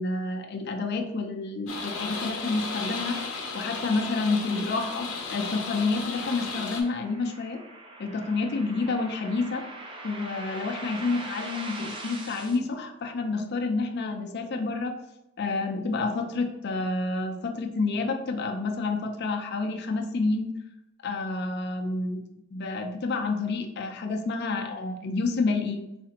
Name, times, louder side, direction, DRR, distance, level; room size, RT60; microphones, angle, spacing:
voice 1, 0.0-3.2 3.5-7.6 8.0-9.7 10.0-14.9 15.4-20.5 21.0-22.2 22.5-25.8, left 3 dB, 50° left, 4 dB, 0.4 m, -29 dB
sound 1, 1.7-6.8, left 4 dB, 80° left, 0.7 m, -34 dB
sound 2, 5.4-12.6, right 2 dB, 25° right, 0.4 m, -42 dB
4.1 x 2.4 x 2.8 m, 0.87 s
head